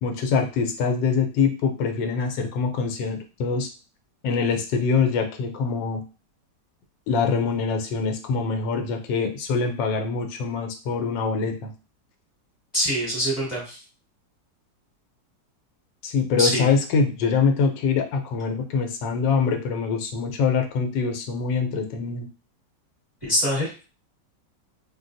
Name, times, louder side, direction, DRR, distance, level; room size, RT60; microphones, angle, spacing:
voice 1, 0.0-3.7 4.2-6.0 7.1-11.7 16.0-22.3, left 5 dB, 80° left, 5 dB, 1.3 m, -24 dB
voice 2, 12.7-13.8 16.4-16.7 23.2-23.7, equal, 20° left, -5 dB, 1.3 m, -24 dB
3.7 x 2.2 x 2.5 m, 0.33 s
omnidirectional pair, 1.9 m